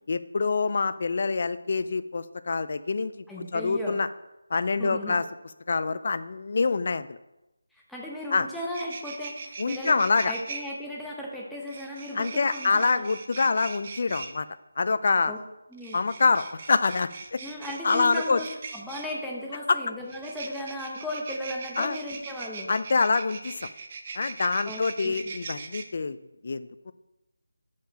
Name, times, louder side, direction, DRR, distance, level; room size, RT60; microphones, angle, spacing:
voice 1, 0.1-3.2 3.5-4.1 4.5-5.2 5.7-7.2 8.3-8.5 9.6-10.3 12.2-14.5 14.8-15.3 15.9-17.4 17.8-18.4 19.7-19.8 21.8-22.0 22.7-23.7 24.2-26.2 26.4-26.9, left 4 dB, 45° left, 13 dB, 0.4 m, -25 dB
voice 2, 3.3-4.0 4.8-5.2 7.7-13.1 15.3-15.4 15.7-16.0 17.4-18.5 18.7-22.7 24.6-25.3, left 1 dB, ahead, -4 dB, 0.8 m, -36 dB
sound 1, 8.2-8.3 8.5-10.6 11.7-14.3 15.7-19.1 20.1-25.8, right 4 dB, 30° right, 0.5 m, -40 dB
6.6 x 5.2 x 5.1 m, 0.94 s
figure-of-eight pair, 170°, 0 cm